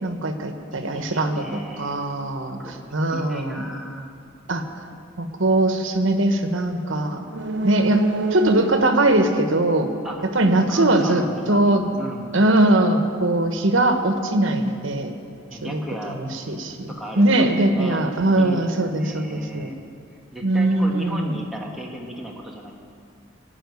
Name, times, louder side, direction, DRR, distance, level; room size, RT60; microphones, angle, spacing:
voice 1, 0.0-2.6 2.9-3.6 4.5-4.6 5.2-7.2 7.6-8.0 8.3-9.9 10.3-11.9 12.3-15.1 15.6-15.8 16.1-19.7 20.4-21.4, right 1 dB, 80° right, 6 dB, 1.2 m, -21 dB
voice 2, 0.7-2.0 2.6-2.8 3.1-4.1 10.0-10.3 10.7-11.7 12.0-12.4 15.5-18.1 18.4-19.8 20.3-22.7, equal, ahead, -2 dB, 1.4 m, -35 dB
sound 1, 7.3-11.0 11.3-11.4, right 3 dB, 60° right, 0.6 m, -28 dB
16.5 x 6.2 x 9.5 m, 2.3 s
head